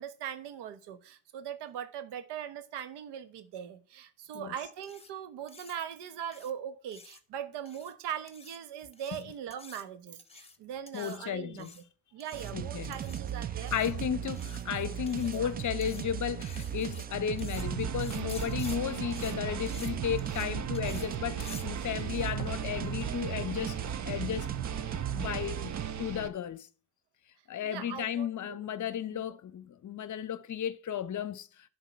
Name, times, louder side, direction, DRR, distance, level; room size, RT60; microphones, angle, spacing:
voice 1, 0.0-11.8 12.1-13.7 15.3-15.5 27.6-28.6 29.1-29.2, right 9 dB, 65° right, 1.3 m, -40 dB
sound 1, 4.8-5.1 5.5-5.7 6.3-6.5 6.9-7.2 7.6-7.9 8.3-8.6 8.9-9.2 9.5-9.8 10.2-10.6 10.9-11.2 11.6-11.8 12.2-12.5 12.9-13.2 13.7-13.9 14.3-14.6 15.1-15.4 15.8-16.0 16.4-17.0 17.4-17.6 18.0-18.8 19.1-19.3 19.7-19.9 20.2-20.5 20.7-21.1 21.4-21.6, left 4 dB, 15° left, 1.3 m, -49 dB
voice 2, 10.9-11.7 12.5-13.0 13.7-23.8 24.0-24.5 25.1-26.7 27.5-31.7, left 9 dB, 40° left, 0.9 m, -34 dB
sound 2, 12.3-25.9, right 10 dB, 25° right, 0.3 m, -37 dB
sound 3, 17.6-26.3, right 8 dB, 40° right, 0.9 m, -37 dB
11.0 x 4.0 x 5.6 m
hypercardioid pair, 60°, 43 cm